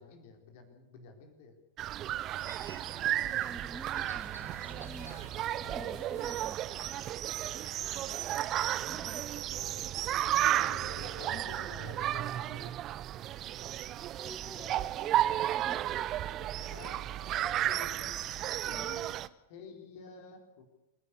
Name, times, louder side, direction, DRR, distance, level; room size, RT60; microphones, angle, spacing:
voice 1, 0.0-1.6 5.5-6.3 8.8-10.0 10.2-12.7 16.3-18.2 18.7-19.2 19.5-20.6, left 5 dB, 50° left, 5 dB, 4.3 m, -50 dB
sound 1, 1.8-19.3, right 13 dB, 35° right, 0.8 m, -33 dB
Crow, 2.3-8.7, right 1 dB, 90° right, 3.3 m, -53 dB
voice 2, 2.7-5.1 5.6-6.9 8.8-9.2 14.1-15.2 15.5-16.1, right 1 dB, 5° right, 9 dB, 1.5 m, -49 dB
28.0 x 11.0 x 8.4 m, 0.99 s
figure-of-eight pair, 90°, 0 cm